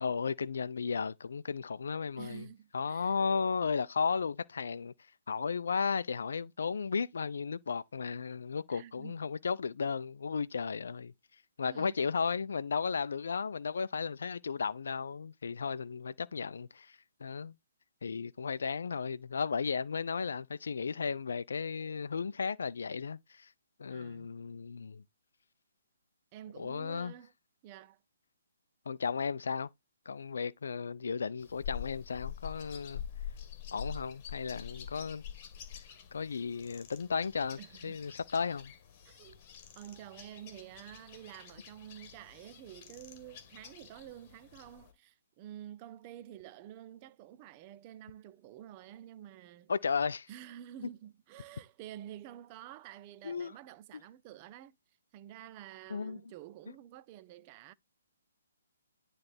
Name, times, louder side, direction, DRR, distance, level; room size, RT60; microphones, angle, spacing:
voice 1, 0.0-2.5 2.7-4.9 5.3-11.1 11.6-17.5 18.0-23.5 23.8-25.0 26.6-27.1 28.9-29.7 30.1-33.0 33.7-35.2 36.1-38.7 49.7-50.3 53.2-53.5 55.9-56.2, left 5 dB, 65° left, 0.4 m, -34 dB
voice 2, 2.2-3.2 8.7-9.1 11.7-12.0 23.9-24.3 26.3-27.3 27.6-28.0 37.6-38.0 39.1-39.4 39.8-49.7 50.3-54.8 55.1-57.7, right 12 dB, 30° right, 0.5 m, -49 dB
sound 1, 31.4-44.9, left 8 dB, 35° left, 1.8 m, -46 dB
9.6 x 3.2 x 4.3 m
figure-of-eight pair, 135°, 0 cm